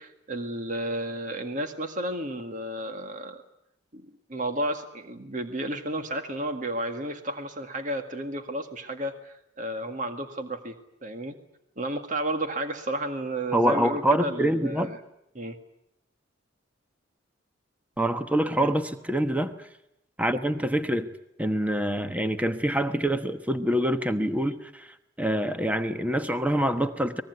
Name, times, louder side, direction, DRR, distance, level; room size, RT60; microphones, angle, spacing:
voice 1, 0.0-3.4 3.9-10.8 11.0-11.4 11.8-15.0 15.3-15.6 18.6-18.7, right 1 dB, 40° right, 6 dB, 1.9 m, -32 dB
voice 2, 13.5-14.9 18.0-19.5 20.2-21.1 21.4-27.2, right 1 dB, 10° right, 8 dB, 1.2 m, -26 dB
23.0 x 21.0 x 9.6 m, 0.81 s
head